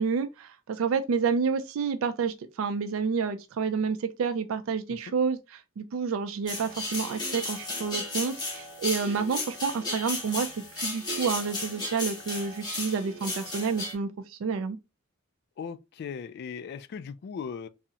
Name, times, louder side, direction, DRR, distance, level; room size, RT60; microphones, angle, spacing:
voice 1, 0.0-10.5 10.7-14.8, right 5 dB, 75° right, 0.3 m, -29 dB
sound 1, 6.5-13.9, left 2 dB, 20° left, 1.2 m, -34 dB
voice 2, 15.6-17.7, left 6 dB, 55° left, 0.3 m, -38 dB
3.6 x 2.0 x 2.7 m
head